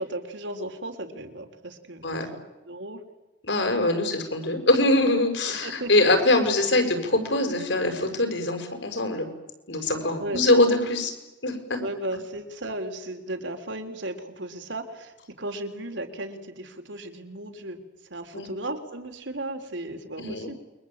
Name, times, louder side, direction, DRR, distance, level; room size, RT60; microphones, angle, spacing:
voice 1, 0.0-2.2 2.7-3.0 5.5-5.9 10.2-10.4 11.8-20.6, right 1 dB, 85° right, 5 dB, 3.8 m, -35 dB
voice 2, 3.4-9.2 9.7-11.1 11.4-11.8 18.3-18.5 20.2-20.5, left 2 dB, 80° left, 6 dB, 6.2 m, -23 dB
28.5 x 23.0 x 8.8 m, 1.1 s
head